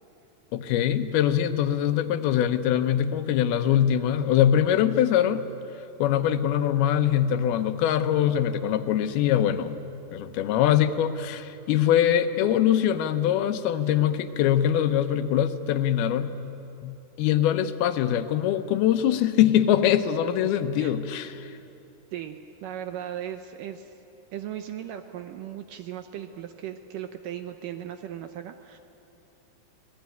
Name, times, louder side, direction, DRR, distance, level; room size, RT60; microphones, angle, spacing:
voice 1, 0.5-5.5 6.0-9.8 10.1-16.3 16.8-21.5, left 10 dB, 80° left, 9 dB, 2.7 m, -23 dB
voice 2, 22.1-23.9 24.3-28.8, right 10 dB, 75° right, 8 dB, 2.1 m, -37 dB
26.0 x 18.5 x 9.3 m, 2.8 s
omnidirectional pair, 4.5 m